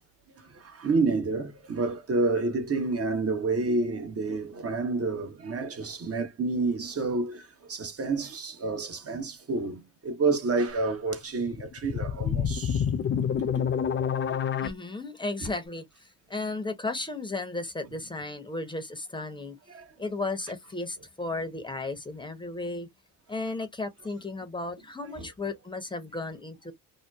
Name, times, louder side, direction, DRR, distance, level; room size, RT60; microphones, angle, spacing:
voice 1, 0.5-12.9 15.4-15.5 19.7-19.8 25.2-25.3, right 3 dB, 30° right, 1.0 m, -29 dB
sound 1, 11.4-14.7, left 8 dB, 25° left, 0.3 m, -27 dB
voice 2, 14.6-15.8 16.3-19.6 20.0-22.9 23.3-26.7, left 2 dB, 10° left, 0.9 m, -34 dB
2.8 x 2.2 x 2.3 m
hypercardioid pair, 60°, 49 cm